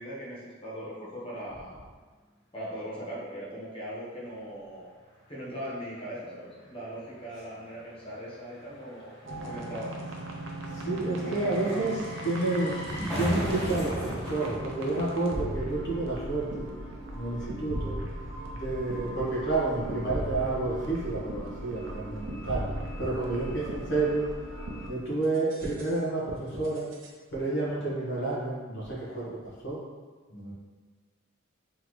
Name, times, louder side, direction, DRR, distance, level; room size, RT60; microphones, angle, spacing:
voice 1, 0.0-1.8 2.5-4.9 5.3-9.1 9.4-9.9 23.2-23.3 29.1-29.3, equal, 30° left, -7 dB, 1.2 m, -39 dB
sound 1, 5.2-5.3 5.5-15.9 16.1-16.2, equal, 5° left, 1.0 m, -38 dB
sound 2, 9.3-24.9 25.2-26.0 26.6-27.1, right 1 dB, 70° right, 0.7 m, -38 dB
voice 2, 10.7-16.6 17.1-17.9 18.5-22.6 23.0-24.3 24.9-26.8 27.3-29.4 29.6-29.8 30.3-30.5, right 2 dB, 60° left, -7 dB, 1.3 m, -30 dB
3.8 x 3.5 x 3.1 m, 1.4 s
head